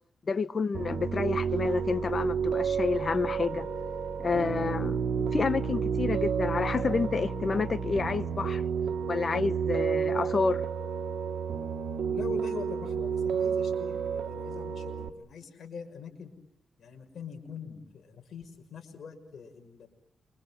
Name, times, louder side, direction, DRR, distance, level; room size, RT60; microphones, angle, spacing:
voice 1, 0.3-3.7 4.2-8.6 9.1-10.6, left 4 dB, 45° left, 1.1 m, -29 dB
Piano, 0.7-15.1, right 6 dB, 70° right, 2.2 m, -31 dB
voice 2, 12.1-16.3 16.8-19.9, left 6 dB, 65° left, 6.1 m, -43 dB
29.0 x 25.0 x 7.7 m
cardioid pair, 75°, 0 cm